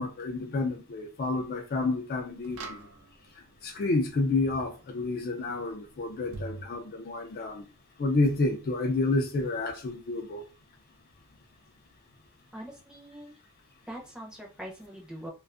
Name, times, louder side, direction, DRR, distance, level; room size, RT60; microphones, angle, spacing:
voice 1, 0.0-2.9 3.6-7.6 8.0-10.4, left 3 dB, 45° left, 0.4 m, -29 dB
sound 1, 1.4-1.5 2.4-3.5 6.3-6.7, right 3 dB, 65° right, 0.5 m, -41 dB
voice 2, 12.5-13.3 13.9-15.3, equal, 5° right, 0.6 m, -42 dB
2.4 x 2.3 x 2.4 m
head